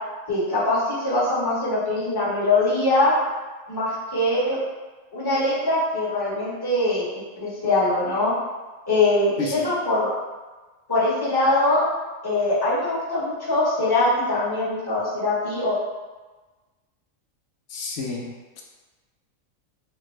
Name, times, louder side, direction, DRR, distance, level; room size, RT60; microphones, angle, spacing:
voice 1, 0.3-3.1 3.7-4.6 5.1-7.1 7.4-8.3 8.9-10.1 10.9-11.8 12.2-15.8, left 2 dB, 20° left, -9 dB, 1.0 m, -22 dB
voice 2, 17.7-18.6, left 3 dB, 65° left, -1 dB, 0.9 m, -31 dB
3.5 x 2.2 x 3.1 m, 1.2 s
omnidirectional pair, 1.4 m